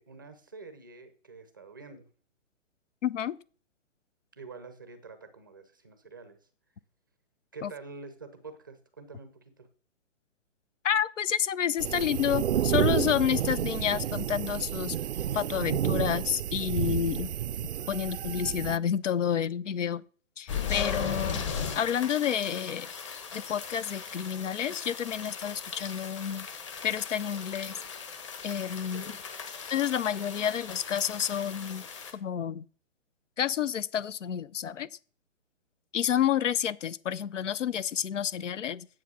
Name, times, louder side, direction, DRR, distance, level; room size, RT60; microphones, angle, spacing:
voice 1, 0.0-2.1 4.4-6.4 7.5-9.7 28.9-29.2, right 4 dB, 15° right, 0.6 m, -47 dB
voice 2, 3.0-3.4 7.6-7.7 10.8-15.0 15.3-17.3 17.9-20.0 20.4-21.5 21.7-22.9 23.3-26.5 26.8-27.8 28.4-29.0 29.7-31.9 32.1-32.7 33.4-34.9 35.9-38.9, left 9 dB, 75° left, 0.7 m, -29 dB
sound 1, 11.8-18.8, right 10 dB, 65° right, 0.5 m, -30 dB
sound 2, 20.5-32.1, left 6 dB, 25° left, 1.2 m, -38 dB
9.7 x 7.4 x 6.1 m
hypercardioid pair, 170°, 37 cm